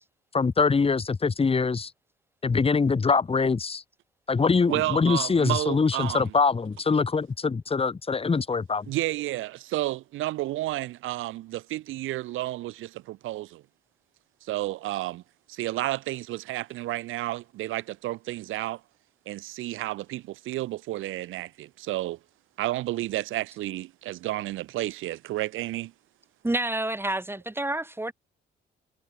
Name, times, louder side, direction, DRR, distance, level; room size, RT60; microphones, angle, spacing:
voice 1, 0.3-1.9 2.4-3.8 4.3-8.9, left 4 dB, 30° left, 2.0 m, -23 dB
voice 2, 4.7-6.3 8.9-13.6 14.4-15.2 15.5-18.8 19.3-22.2 22.6-25.9, right 16 dB, 85° right, 0.9 m, -31 dB
voice 3, 26.4-28.1, right 1 dB, 10° right, 2.1 m, -28 dB
cardioid pair, 90°, 20 cm